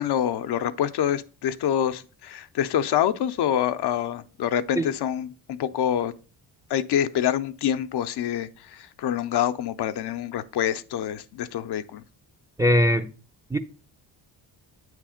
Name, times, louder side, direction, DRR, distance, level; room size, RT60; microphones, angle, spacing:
voice 1, 0.0-6.1 6.7-12.0, left 10 dB, 60° left, 0.6 m, -26 dB
voice 2, 12.6-13.1 13.5-13.6, equal, 10° right, 0.4 m, -20 dB
8.3 x 3.3 x 4.9 m
cardioid pair, 80°, 46 cm